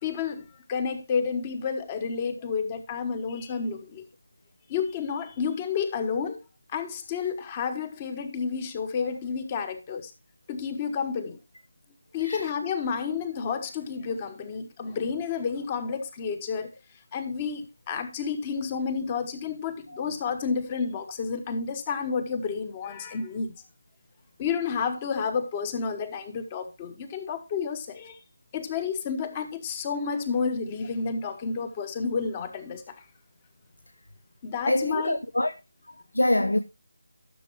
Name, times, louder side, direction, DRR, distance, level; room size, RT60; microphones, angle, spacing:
voice 1, 0.0-4.1 4.7-6.4 6.7-10.1 10.5-11.4 12.1-16.7 17.1-23.5 24.4-28.2 28.5-33.0 34.4-35.2, left 5 dB, 20° left, 1.1 m, -30 dB
voice 2, 34.7-35.5 36.1-36.6, left 1 dB, 85° left, 0.8 m, -24 dB
13.5 x 6.9 x 3.0 m
figure-of-eight pair, 160°, 0 cm